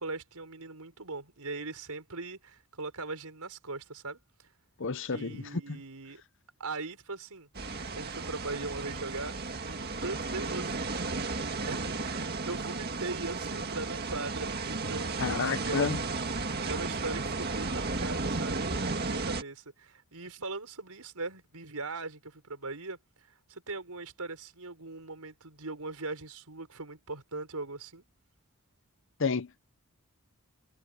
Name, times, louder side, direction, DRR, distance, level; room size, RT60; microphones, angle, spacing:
voice 1, 0.0-4.2 5.1-6.2 6.6-9.3 9.7-15.9 16.3-28.0, right 3 dB, 90° right, 5.3 m, -40 dB
voice 2, 4.8-5.8 15.2-16.0 29.2-29.6, left 5 dB, 55° left, 0.8 m, -31 dB
sound 1, 7.5-19.4, right 3 dB, 45° right, 2.0 m, -34 dB
head